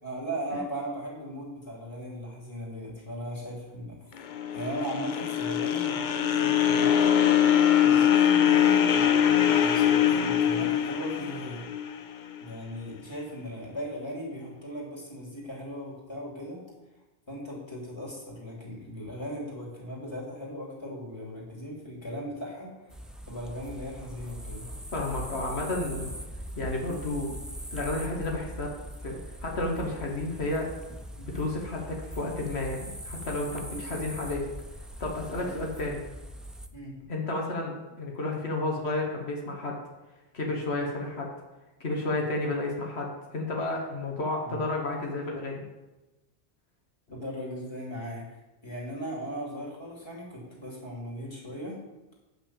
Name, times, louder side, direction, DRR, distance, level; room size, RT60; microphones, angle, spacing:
voice 1, 0.0-4.0 4.5-7.1 7.4-11.6 12.4-16.6 17.3-22.9 23.3-24.7 25.9-26.0 31.2-31.3 33.7-34.0 35.3-35.6 36.7-36.9 44.4-44.6 47.1-48.4 48.6-51.8, equal, 25° left, -4 dB, 2.8 m, -38 dB
sound 1, 4.2-12.4, left 9 dB, 55° left, 0.7 m, -23 dB
sound 2, 22.9-36.7, equal, ahead, 0.4 m, -41 dB
voice 2, 24.9-26.1 26.5-27.3 27.7-28.7 29.0-30.7 31.3-34.4 35.0-36.0 37.1-39.8 40.3-41.3 41.8-45.6, left 2 dB, 90° left, 0 dB, 1.7 m, -31 dB
8.4 x 5.9 x 7.1 m, 1.1 s
omnidirectional pair, 1.1 m